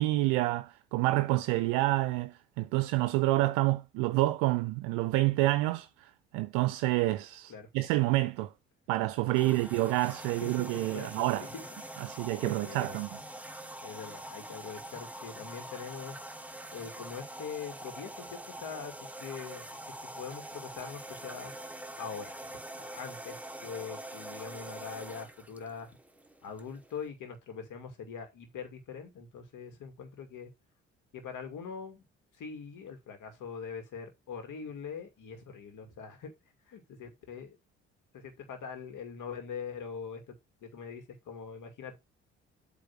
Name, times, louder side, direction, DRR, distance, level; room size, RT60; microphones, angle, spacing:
voice 1, 0.0-8.5 8.9-11.5 12.0-13.1, right 18 dB, 70° right, 0.5 m, -28 dB
sound 1, 9.3-27.1, right 1 dB, 5° right, 1.1 m, -44 dB
voice 2, 10.2-11.7 12.0-12.1 12.4-13.0 13.8-16.2 16.7-19.8 20.0-21.5 22.0-22.4 22.7-25.9 26.4-30.5 31.1-32.0 32.4-36.3 36.7-37.6 38.1-42.0, left 6 dB, 60° left, 2.4 m, -43 dB
8.0 x 3.6 x 6.1 m
hypercardioid pair, 45°, 35 cm